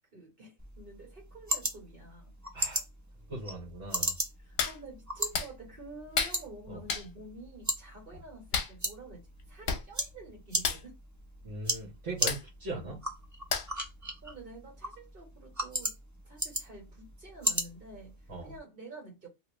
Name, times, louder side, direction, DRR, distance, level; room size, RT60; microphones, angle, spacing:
voice 1, 0.1-2.3 4.4-11.0 14.2-16.0 16.2-18.2 18.4-19.3, right 2 dB, 45° right, 1.8 m, -49 dB
sound 1, 0.6-18.6, equal, 25° right, 0.4 m, -38 dB
voice 2, 3.3-4.2 6.7-6.8 11.4-13.0 18.3-18.5, right 2 dB, 65° right, 1.5 m, -39 dB
Hands, 4.6-4.8 5.3-5.5 6.1-6.4 6.9-7.1 8.5-8.7 9.4-9.5 9.7-9.8 10.1-10.3 10.6-10.8 12.3-12.4 13.5-13.8 14.3-14.4, left 5 dB, 55° left, 0.9 m, -31 dB
2.9 x 2.7 x 3.0 m
omnidirectional pair, 1.4 m